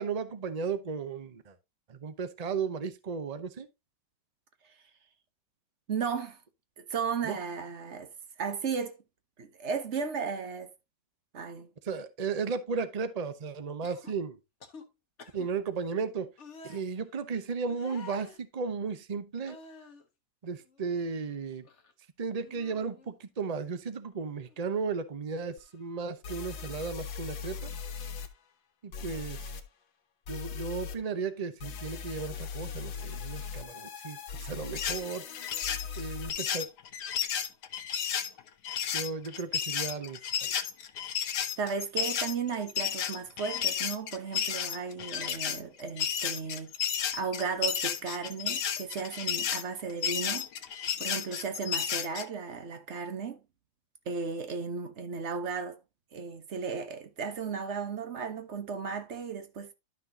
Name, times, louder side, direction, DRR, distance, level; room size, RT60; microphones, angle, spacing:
voice 1, 0.0-1.5 1.9-3.7 7.2-7.4 11.8-14.4 15.3-16.3 16.6-19.6 20.4-21.6 22.2-27.7 28.8-29.5 30.3-35.2 36.0-36.7 38.9-40.2 40.5-40.6, right 5 dB, 85° right, 0.3 m, -35 dB
voice 2, 5.9-6.4 6.8-8.1 8.4-9.0 9.4-10.7 11.3-11.7 41.6-46.7 47.1-50.5 51.0-53.4 54.1-55.8 56.1-59.7, right 5 dB, 45° right, 1.2 m, -35 dB
sound 1, 13.8-14.1 14.6-14.8 15.2-15.5 16.4-16.8 17.7-18.4 19.4-20.0 20.5-21.4 21.6-21.9 22.3-23.1 24.4-24.6, left 4 dB, 40° left, 1.5 m, -50 dB
sound 2, 25.6-25.7 26.2-28.3 28.9-29.6 30.3-31.0 31.6-36.3, left 6 dB, 85° left, 1.8 m, -40 dB
sound 3, 34.7-52.2, left 8 dB, 65° left, 1.4 m, -32 dB
12.0 x 5.9 x 2.8 m
omnidirectional pair, 2.0 m